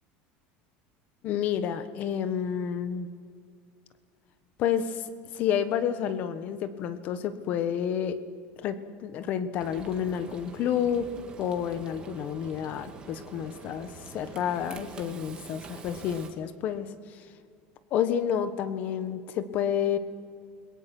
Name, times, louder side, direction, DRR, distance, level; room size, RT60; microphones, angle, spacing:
voice 1, 1.2-3.1 4.6-8.2 8.6-11.1 11.4-17.3 17.9-20.0, left 9 dB, 35° left, 12 dB, 1.3 m, -30 dB
Frying (food), 9.6-16.3, right 5 dB, 20° right, 1.9 m, -46 dB
29.5 x 22.0 x 6.1 m, 2.3 s
cardioid pair, 175°, 5 cm